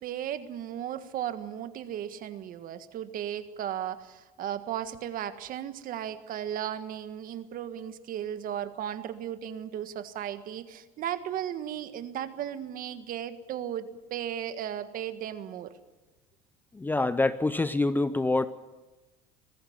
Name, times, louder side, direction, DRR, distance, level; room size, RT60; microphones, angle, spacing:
voice 1, 0.0-15.7, right 10 dB, 45° right, 10 dB, 1.6 m, -35 dB
voice 2, 16.7-18.5, left 2 dB, 10° left, 13 dB, 0.6 m, -26 dB
21.0 x 15.5 x 9.6 m, 1.1 s
cardioid pair, 135°, 19 cm